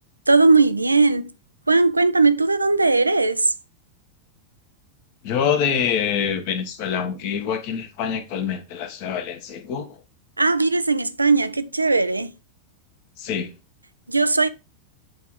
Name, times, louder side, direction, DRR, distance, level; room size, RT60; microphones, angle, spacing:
voice 1, 0.3-1.3 1.7-3.5 10.4-12.3 14.1-14.5, right 3 dB, 80° right, 0.4 m, -18 dB
voice 2, 5.2-10.0 13.2-13.5, left 7 dB, 45° left, 1.3 m, -25 dB
8.0 x 3.6 x 4.5 m
figure-of-eight pair, 90°, 0 cm